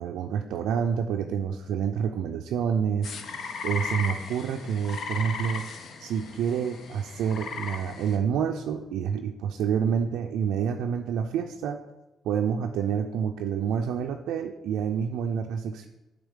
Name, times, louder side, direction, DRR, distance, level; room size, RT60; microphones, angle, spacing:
voice 1, 0.0-3.1 3.6-5.6 6.0-11.8 12.2-15.9, right 7 dB, 85° right, 3 dB, 0.3 m, -28 dB
sound 1, 3.0-8.2, left 5 dB, 60° left, 0.7 m, -36 dB
8.1 x 3.4 x 3.6 m, 1.0 s
cardioid pair, 90°, 0 cm